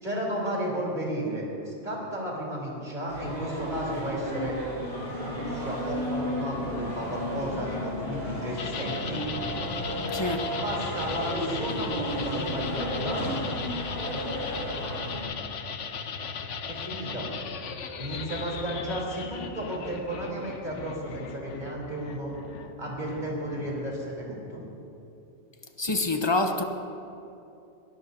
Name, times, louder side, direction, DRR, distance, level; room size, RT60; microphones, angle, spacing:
voice 1, 0.0-4.6 5.2-9.2 10.5-13.3 16.6-17.3 18.0-22.3 22.8-24.6, right 1 dB, 40° right, -4 dB, 4.0 m, -33 dB
sound 1, 3.1-15.2, equal, 45° left, 4.9 m, -33 dB
sound 2, 8.6-24.1, left 6 dB, 80° left, 1.2 m, -38 dB
voice 2, 10.1-10.5 25.8-26.6, left 2 dB, 25° left, 5 dB, 0.9 m, -26 dB
23.0 x 17.5 x 2.8 m, 2.8 s
omnidirectional pair, 1.2 m